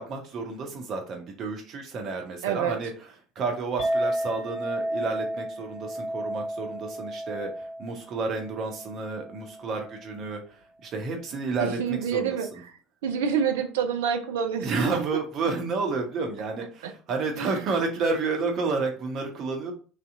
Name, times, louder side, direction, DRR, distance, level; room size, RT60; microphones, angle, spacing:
voice 1, 0.0-2.9 3.4-12.6 14.6-19.7, right 4 dB, 45° right, 3 dB, 0.9 m, -30 dB
voice 2, 2.4-2.8 11.6-12.5 13.0-15.0 16.8-16.9 17.4-17.6, right 7 dB, 65° right, 7 dB, 0.4 m, -27 dB
Chink clink, 3.8-10.1, right 1 dB, 60° left, 1.7 m, -32 dB
3.3 x 2.8 x 3.6 m, 0.39 s
figure-of-eight pair, 65°, 0 cm